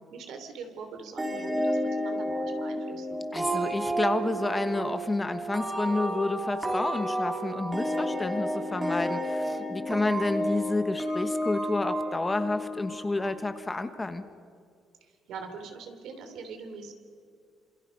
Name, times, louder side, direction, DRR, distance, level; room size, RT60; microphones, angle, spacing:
voice 1, 0.1-3.2 15.0-16.9, right 5 dB, 70° right, 6 dB, 3.2 m, -43 dB
sound 1, 1.2-13.6, equal, 15° right, 3.1 m, -31 dB
voice 2, 3.3-14.2, left 2 dB, 15° left, 9 dB, 1.1 m, -30 dB
27.0 x 27.0 x 5.4 m, 2.3 s
cardioid pair, 150°, 0 cm